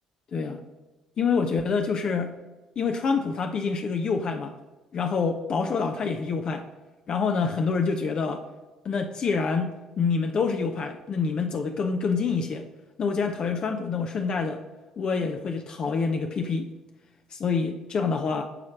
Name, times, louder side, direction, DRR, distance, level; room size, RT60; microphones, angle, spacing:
voice 1, 1.2-2.3 2.8-4.5 4.9-6.7 7.1-8.5 8.8-12.7 13.0-14.6 15.0-16.7 17.3-18.4, left 5 dB, 45° left, 5 dB, 0.5 m, -26 dB
8.7 x 3.1 x 5.8 m, 1.2 s
figure-of-eight pair, 50°, 2 cm